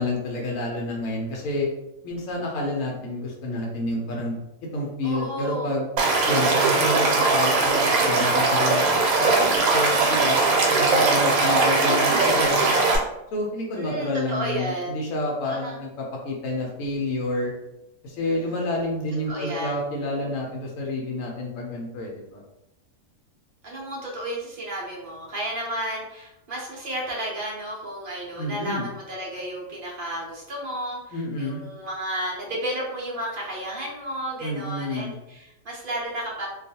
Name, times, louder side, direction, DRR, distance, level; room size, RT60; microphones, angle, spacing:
voice 1, 0.0-1.7 2.0-4.3 4.7-5.9 6.3-10.4 10.7-12.7 13.3-17.5 18.0-22.4 28.4-28.9 31.1-31.6 34.4-35.1, left 1 dB, 70° left, -1 dB, 0.9 m, -29 dB
voice 2, 5.0-5.7 10.8-12.1 13.7-15.0 15.4-15.8 18.2-18.7 19.3-19.8 23.6-36.5, right 1 dB, 55° right, -3 dB, 0.6 m, -32 dB
Stream / Liquid, 6.0-13.0, right 3 dB, 80° right, 1.1 m, -20 dB
2.3 x 2.3 x 2.7 m, 0.89 s
omnidirectional pair, 1.5 m